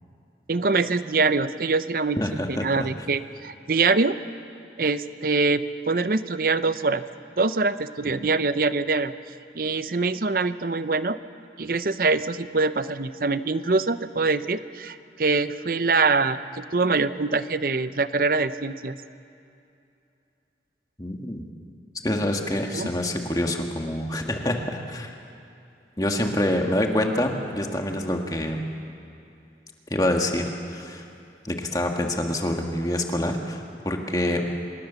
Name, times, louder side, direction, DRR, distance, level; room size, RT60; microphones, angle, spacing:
voice 1, 0.5-2.2 2.5-4.2 4.8-7.0 7.4-9.1 9.5-11.2 11.6-19.0 22.7-22.9, right 3 dB, 55° right, 13 dB, 0.7 m, -24 dB
voice 2, 2.2-2.9 21.0-21.4 22.0-25.1 26.0-28.6 29.9-31.1 31.4-34.5, left 1 dB, 20° left, 3 dB, 1.8 m, -26 dB
26.0 x 19.5 x 7.0 m, 2.7 s
head